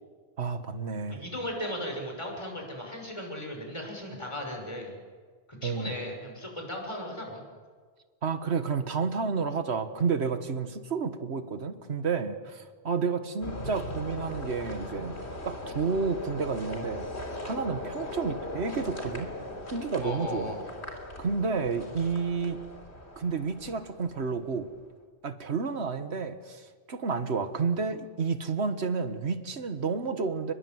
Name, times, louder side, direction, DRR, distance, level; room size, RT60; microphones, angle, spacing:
voice 1, 0.4-1.2 5.6-5.9 8.2-15.2 15.4-17.1 17.4-19.3 19.7-20.6 21.2-22.6 23.2-24.7 25.2-30.5, right 5 dB, 80° right, 8 dB, 1.7 m, -30 dB
voice 2, 1.1-5.0 5.5-7.4 20.0-20.6, left 1 dB, 30° left, 1 dB, 6.1 m, -36 dB
sound 1, 13.4-24.6, left 1 dB, 90° left, 3.8 m, -39 dB
29.5 x 21.5 x 7.9 m, 1.5 s
omnidirectional pair, 1.1 m